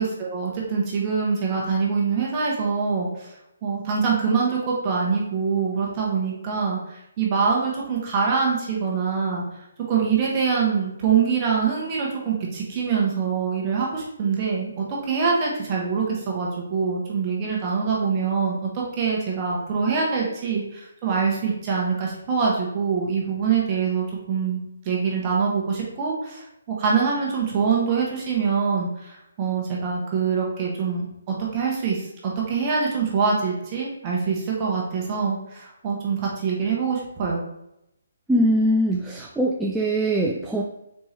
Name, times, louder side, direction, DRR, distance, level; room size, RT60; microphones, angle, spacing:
voice 1, 0.0-3.3 3.6-9.4 9.9-37.4, right 5 dB, 30° right, -3 dB, 1.0 m, -24 dB
voice 2, 38.3-40.6, right 1 dB, 5° right, -3 dB, 0.3 m, -22 dB
4.2 x 3.4 x 3.1 m, 0.82 s
figure-of-eight pair, 145°, 0 cm